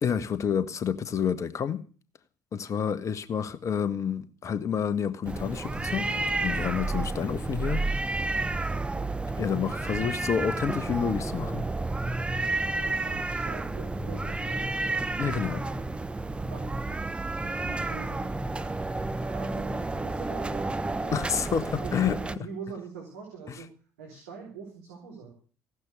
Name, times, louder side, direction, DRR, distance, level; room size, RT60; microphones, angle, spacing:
voice 1, 0.0-1.8 2.5-6.1 6.4-7.9 9.4-11.7 15.2-15.6 21.1-22.5, left 7 dB, 40° left, 1.5 m, -29 dB
sound 1, 5.3-22.4, right 2 dB, 15° right, 1.0 m, -31 dB
voice 2, 6.8-7.1 8.5-8.7 12.7-14.9 16.5-16.7 17.6-23.7 24.0-25.3, right 5 dB, 75° right, 4.1 m, -44 dB
15.5 x 11.5 x 6.6 m
figure-of-eight pair, 55°, 8 cm